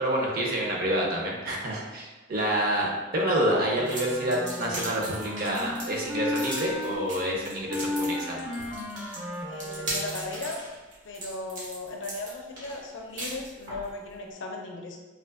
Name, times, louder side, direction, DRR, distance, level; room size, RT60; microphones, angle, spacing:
voice 1, 0.0-8.4, right 1 dB, 50° right, -2 dB, 0.6 m, -28 dB
Wind instrument woodwind instrument, 3.8-7.0 7.7-10.4, left 2 dB, 5° right, 0.4 m, -34 dB
sound 1, 3.8-13.9, right 1 dB, 75° right, 1.2 m, -38 dB
voice 2, 9.5-10.6 11.0-15.0, left 2 dB, 75° left, 1 dB, 0.5 m, -37 dB
3.6 x 2.5 x 2.4 m, 1.2 s
head